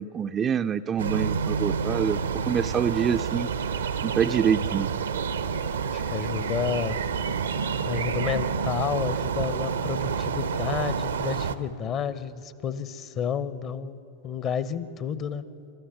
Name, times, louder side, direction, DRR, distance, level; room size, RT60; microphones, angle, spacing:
voice 1, 0.0-3.5 4.0-4.9, right 7 dB, 25° right, 9 dB, 0.4 m, -26 dB
sound 1, 1.0-11.6, right 6 dB, 70° right, 0.7 m, -28 dB
voice 2, 5.9-7.0 7.9-15.4, left 7 dB, 30° left, 15 dB, 0.8 m, -31 dB
21.0 x 13.0 x 9.5 m, 2.8 s
figure-of-eight pair, 90°, 0 cm